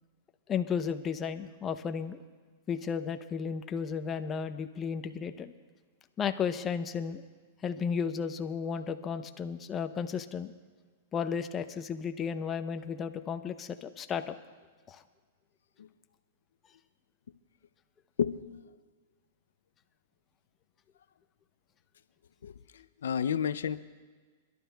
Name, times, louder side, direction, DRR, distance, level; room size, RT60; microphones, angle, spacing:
voice 1, 0.5-2.2 2.7-5.5 6.2-7.2 7.6-10.5 11.1-14.3 14.9-15.0, left 6 dB, 25° left, 9 dB, 0.7 m, -33 dB
voice 2, 18.2-18.7 22.4-23.8, left 8 dB, 85° left, 13 dB, 0.4 m, -32 dB
29.5 x 12.0 x 2.3 m, 1.5 s
hypercardioid pair, 130°, 0 cm